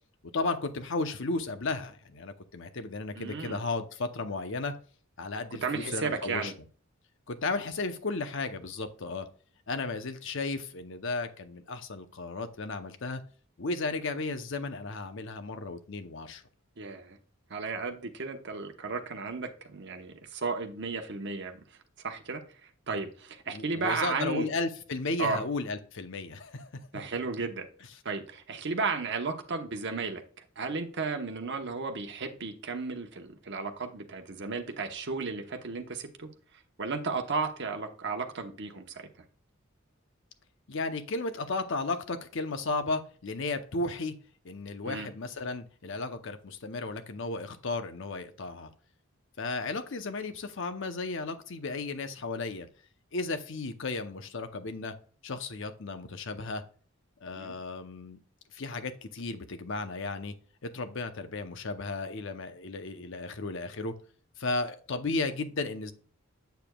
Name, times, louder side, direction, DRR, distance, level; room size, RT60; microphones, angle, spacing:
voice 1, 0.3-4.7 5.2-6.5 7.3-9.3 9.7-13.2 13.6-16.4 23.5-26.8 40.7-44.1 44.4-48.7 49.4-52.7 53.1-54.9 55.2-56.6 57.2-58.2 58.5-60.3 60.6-63.9 64.4-65.9, left 3 dB, 65° left, 8 dB, 0.8 m, -34 dB
voice 2, 3.2-3.6 5.6-6.5 16.8-17.2 17.5-21.6 22.0-24.5 25.2-25.4 26.9-27.7 28.0-36.3 36.8-39.1 44.8-45.1 57.3-57.6, right 4 dB, 60° right, 4 dB, 1.0 m, -34 dB
8.0 x 6.9 x 2.3 m, 0.42 s
head